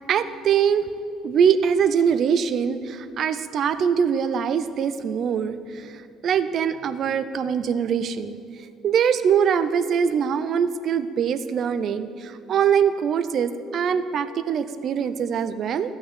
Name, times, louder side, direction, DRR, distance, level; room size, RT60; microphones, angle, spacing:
voice 1, 0.1-0.8 1.2-8.4 8.8-15.9, right 7 dB, 45° right, 12 dB, 0.6 m, -23 dB
13.5 x 6.0 x 8.2 m, 2.4 s
cardioid pair, 140°, 0 cm